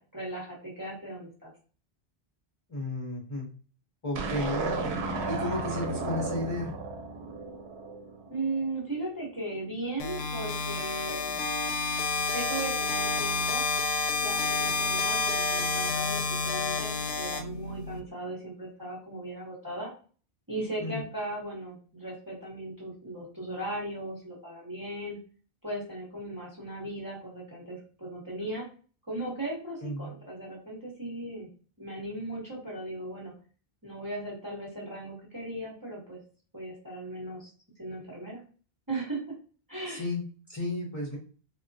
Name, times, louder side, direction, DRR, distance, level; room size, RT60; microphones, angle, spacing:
voice 1, 0.0-1.5 8.3-11.4 12.1-13.6 14.2-19.9 20.5-25.2 25.6-28.6 29.1-31.5 31.8-33.3 33.8-36.2 36.5-37.5 37.8-38.4 38.9-39.2 39.7-40.1, right 1 dB, 20° right, -5 dB, 0.9 m, -37 dB
voice 2, 2.7-3.5 4.0-5.0 5.3-6.7 20.8-21.0 29.8-30.1 39.9-40.2 40.5-41.2, left 1 dB, 30° left, -4 dB, 0.8 m, -33 dB
sound 1, 4.2-8.5, right 3 dB, 85° right, 0.8 m, -34 dB
sound 2, 10.0-18.0, left 3 dB, 80° left, 0.8 m, -29 dB
3.4 x 2.2 x 2.6 m, 0.40 s
omnidirectional pair, 1.1 m